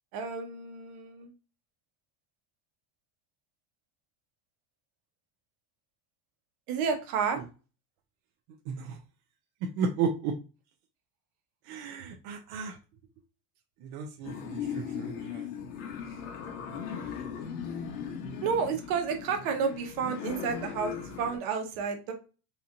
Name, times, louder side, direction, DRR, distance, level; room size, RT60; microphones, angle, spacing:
voice 1, 0.1-1.3 6.7-7.4 18.4-22.1, right 6 dB, 70° right, 4 dB, 1.1 m, -31 dB
voice 2, 8.7-9.0 9.8-10.3 11.6-12.8 13.8-15.5, right 5 dB, 55° right, 2 dB, 0.6 m, -34 dB
sound 1, 14.2-21.4, left 7 dB, 85° left, 1.0 m, -38 dB
4.1 x 2.8 x 2.5 m, 0.33 s
cardioid pair, 150°, 43 cm